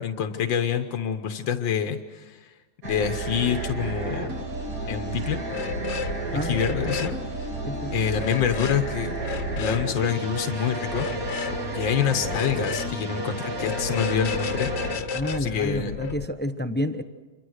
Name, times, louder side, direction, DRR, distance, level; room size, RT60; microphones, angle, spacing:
voice 1, 0.0-2.5 2.8-4.4 4.9-5.4 6.3-7.5 7.9-9.2 9.6-11.1 11.7-14.7 15.4-16.0, left 8 dB, 90° left, 7 dB, 1.8 m, -27 dB
sound 1, 2.8-15.0, right 2 dB, 50° right, 3.0 m, -31 dB
sound 2, 5.5-6.2 6.5-7.2 8.2-8.8 9.2-9.9 10.9-11.6 12.2-12.9 13.5-16.2, left 6 dB, 65° left, 1.6 m, -32 dB
voice 2, 6.3-7.0 7.7-7.9 15.1-17.0, left 1 dB, 10° left, 9 dB, 0.4 m, -29 dB
27.5 x 23.5 x 6.5 m, 1.3 s
omnidirectional pair, 2.0 m